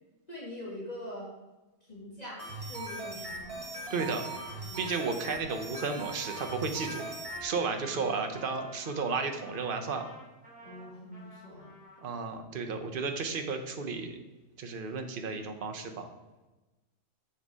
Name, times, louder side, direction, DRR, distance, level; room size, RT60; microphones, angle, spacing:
voice 1, 0.3-1.3 1.8-3.6 3.9-4.2 4.6-5.0 7.8-8.2 10.6-11.8, left 1 dB, 30° left, -4 dB, 1.9 m, -44 dB
sound 1, 2.4-7.4, right 2 dB, 25° right, 1.7 m, -40 dB
voice 2, 3.9-4.2 4.8-7.0 7.4-10.0 12.0-14.2 14.6-16.1, right 4 dB, 45° right, 5 dB, 1.0 m, -33 dB
Trumpet, 4.3-12.3, right 1 dB, 5° right, 3.0 m, -51 dB
7.8 x 5.7 x 4.8 m, 1.1 s
omnidirectional pair, 1.4 m